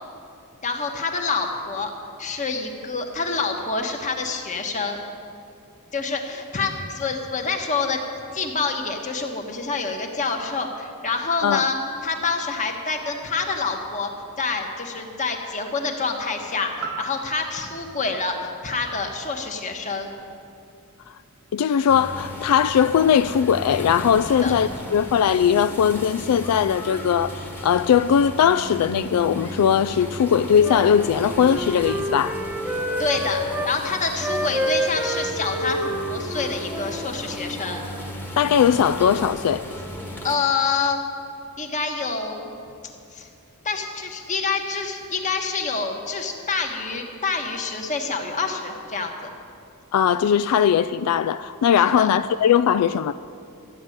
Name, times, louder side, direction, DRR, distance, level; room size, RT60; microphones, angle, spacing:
voice 1, 0.6-1.9 2.2-5.0 5.9-8.0 8.3-11.8 12.0-14.1 14.4-20.1 24.4-24.6 33.0-37.8 40.2-41.0 41.6-42.5 43.1-43.3 43.6-49.3 52.0-52.1, left 4 dB, 35° left, 1.4 m, -27 dB
sound 1, 16.8-20.9 21.3-21.4, right 4 dB, 55° right, 0.7 m, -40 dB
voice 2, 21.5-32.4 38.4-39.6 49.9-53.1, left 8 dB, 85° left, 0.3 m, -19 dB
sound 2, 21.9-40.4, left 1 dB, 10° left, 1.3 m, -35 dB
Wind instrument woodwind instrument, 30.6-33.7 34.1-37.6, equal, 5° right, 0.9 m, -28 dB
13.5 x 9.6 x 7.9 m
head